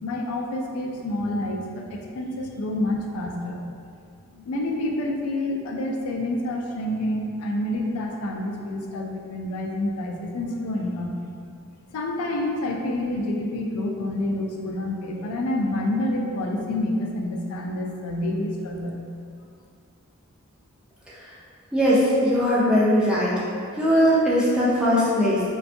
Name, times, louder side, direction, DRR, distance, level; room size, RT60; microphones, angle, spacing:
voice 1, 0.0-3.6 4.3-11.1 11.9-19.0, left 1 dB, 75° left, 0 dB, 0.3 m, -28 dB
voice 2, 21.7-23.4 23.8-25.4, equal, 5° right, -8 dB, 0.4 m, -20 dB
2.5 x 2.2 x 2.5 m, 2.3 s
head